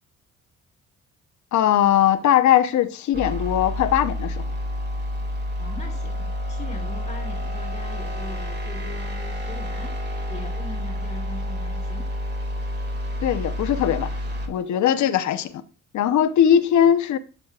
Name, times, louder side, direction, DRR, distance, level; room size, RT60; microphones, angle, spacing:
voice 1, 1.5-4.4 13.2-14.2 14.5-15.6 15.9-17.2, left 10 dB, 70° left, 0.8 m, -20 dB
sound 1, 3.1-14.5, left 1 dB, 35° right, 2.0 m, -29 dB
voice 2, 5.6-9.9 10.3-12.1 15.0-15.1, left 2 dB, 20° left, 1.5 m, -40 dB
11.0 x 6.3 x 2.4 m
cardioid pair, 90°, 30 cm